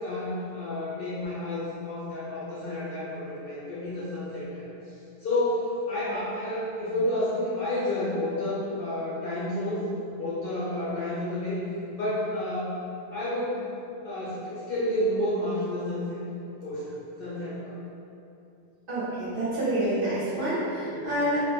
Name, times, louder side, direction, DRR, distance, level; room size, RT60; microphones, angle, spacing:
voice 1, 0.0-4.7 5.2-9.8 10.1-11.6 11.9-12.7 13.1-16.2 16.6-17.8 20.8-21.1, left 1 dB, 60° left, -9 dB, 0.6 m, -30 dB
voice 2, 18.9-21.4, right 1 dB, 55° right, -10 dB, 0.7 m, -27 dB
2.3 x 2.0 x 3.2 m, 2.7 s
omnidirectional pair, 1.3 m